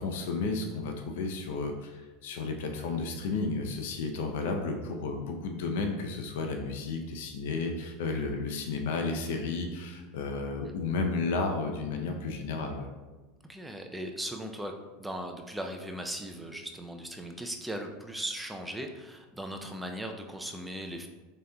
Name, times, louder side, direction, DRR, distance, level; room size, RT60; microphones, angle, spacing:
voice 1, 0.0-12.9, left 3 dB, 75° left, 3 dB, 0.5 m, -32 dB
voice 2, 13.5-14.7 15.0-21.1, right 1 dB, 5° right, 3 dB, 0.4 m, -38 dB
6.3 x 2.8 x 2.2 m, 1.2 s
supercardioid pair, 115°, 0 cm